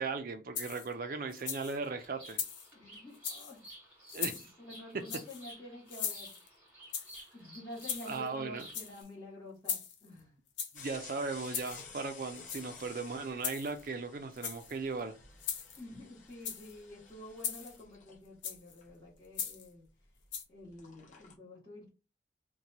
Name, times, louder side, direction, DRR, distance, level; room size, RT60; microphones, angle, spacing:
voice 1, 0.0-2.4 4.1-4.3 4.9-5.0 8.0-8.7 10.7-15.2, right 4 dB, 50° right, 0.4 m, -37 dB
Bird vocalization bird call bird song, 0.5-9.0, right 1 dB, 10° right, 1.4 m, -54 dB
sound 1, 0.6-0.9 1.3-1.8 2.3-2.7 3.1-3.5 4.1-4.5 5.1-5.4 5.9-6.5 6.9-7.3 7.8-8.3 8.6-9.1 9.7-10.1 10.6-10.9 11.5-11.8 12.4-12.9 13.4-13.9 14.3-14.8 15.4-15.8 16.3-16.7 17.4-17.8 18.4-18.7 19.4-19.7 20.3-20.4, left 7 dB, 90° left, 0.6 m, -39 dB
voice 2, 2.7-3.6 4.1-6.3 7.3-10.3 15.8-19.8 20.5-21.9, left 1 dB, 25° left, 1.3 m, -49 dB
sound 2, 10.7-20.3 20.6-21.3, left 5 dB, 45° left, 0.8 m, -53 dB
2.9 x 2.2 x 4.0 m
head